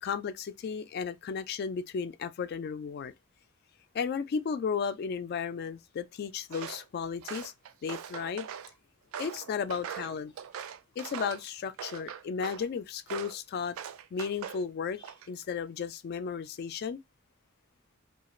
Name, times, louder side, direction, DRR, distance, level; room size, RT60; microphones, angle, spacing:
voice 1, 0.0-3.1 3.9-7.5 7.8-8.5 9.2-10.3 11.0-13.8 14.1-17.0, left 6 dB, 50° left, 0.3 m, -34 dB
Walk footsteps, 6.5-6.8 7.2-8.7 9.1-11.4 11.8-12.7 13.1-13.4 13.8-14.6 15.0-15.4, right 8 dB, 80° right, 0.3 m, -41 dB
2.3 x 2.3 x 3.0 m
head